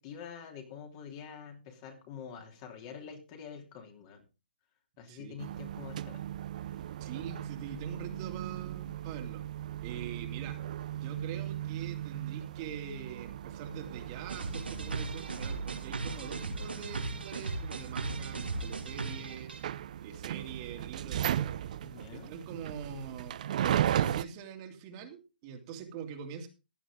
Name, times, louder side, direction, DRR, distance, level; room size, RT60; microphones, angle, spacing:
voice 1, 0.0-4.2 5.0-6.2 21.8-22.3, left 7 dB, 35° left, 3 dB, 3.1 m, -46 dB
sound 1, 5.4-24.2, right 11 dB, 50° right, 0.6 m, -37 dB
voice 2, 7.0-9.4 9.8-10.6 10.9-19.5 20.0-21.5 22.1-26.5, right 7 dB, 30° right, 4 dB, 2.4 m, -44 dB
sound 2, 14.3-19.6, right 3 dB, 85° right, 2.5 m, -37 dB
15.0 x 9.8 x 3.7 m, 0.29 s
hypercardioid pair, 140°, 5 cm